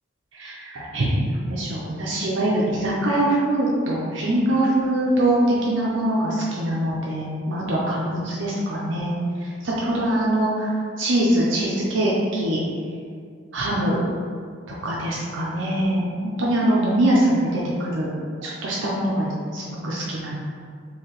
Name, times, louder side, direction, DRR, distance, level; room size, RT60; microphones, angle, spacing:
voice 1, 0.3-5.4 5.7-9.1 9.6-10.7 11.0-12.6 13.5-14.0 14.8-18.1 18.4-20.4, right 1 dB, 70° right, -5 dB, 0.6 m, -23 dB
4.7 x 2.8 x 3.0 m, 2.2 s
head